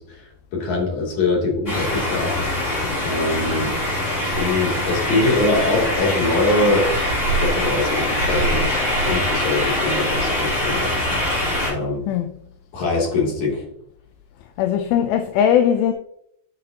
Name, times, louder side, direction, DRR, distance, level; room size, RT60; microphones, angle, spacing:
voice 1, 0.0-2.3 3.0-3.8 4.4-6.9 7.3-10.9 11.6-12.0 12.7-13.7, left 2 dB, 50° left, 4.1 m, -23 dB
sound 1, 1.7-11.7, left 1 dB, 20° left, 3.3 m, -23 dB
voice 2, 14.6-15.9, left 9 dB, 80° left, 2.3 m, -19 dB
13.0 x 6.9 x 2.9 m
omnidirectional pair, 4.7 m